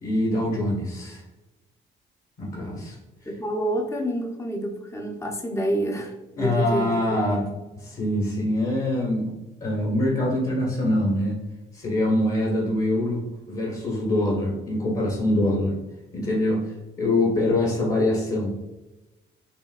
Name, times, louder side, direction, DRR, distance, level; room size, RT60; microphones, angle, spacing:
voice 1, 0.0-1.2 2.4-3.0 6.4-7.5 7.8-9.3 9.6-11.4 11.7-15.8 16.1-16.7 17.0-18.6, left 1 dB, 45° left, -4 dB, 1.3 m, -24 dB
voice 2, 3.2-7.2, right 1 dB, 15° left, 2 dB, 0.7 m, -28 dB
5.5 x 2.6 x 2.4 m, 1.0 s
cardioid pair, 90°, 20 cm